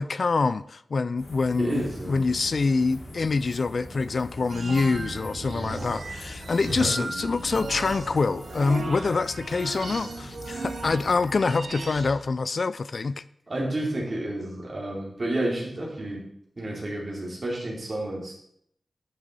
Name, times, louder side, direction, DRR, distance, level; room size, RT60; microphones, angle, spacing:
voice 1, 0.0-13.2, left 4 dB, 55° left, 16 dB, 0.3 m, -26 dB
sound 1, 1.2-11.4, left 1 dB, 75° left, 3.7 m, -43 dB
voice 2, 1.6-2.3 6.6-6.9 13.5-16.2 16.6-18.3, right 1 dB, 40° right, -2 dB, 3.1 m, -30 dB
sound 2, 4.5-12.2, right 3 dB, 70° right, 1.0 m, -37 dB
11.5 x 6.3 x 4.0 m, 0.71 s
wide cardioid pair, 120°, 0 cm